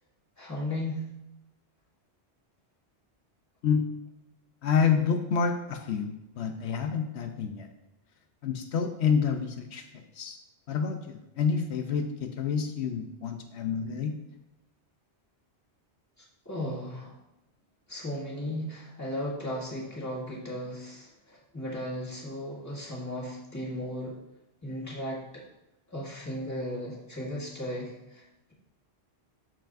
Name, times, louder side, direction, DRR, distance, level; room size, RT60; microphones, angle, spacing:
voice 1, 0.4-1.1 16.5-17.1 17.9-24.2 24.6-25.4 25.9-28.2, left 1 dB, 15° left, -5 dB, 1.9 m, -36 dB
voice 2, 4.6-7.7 8.4-10.4 10.7-14.1, left 6 dB, 85° left, 6 dB, 0.9 m, -28 dB
13.5 x 4.6 x 2.5 m, 0.93 s
omnidirectional pair, 1.1 m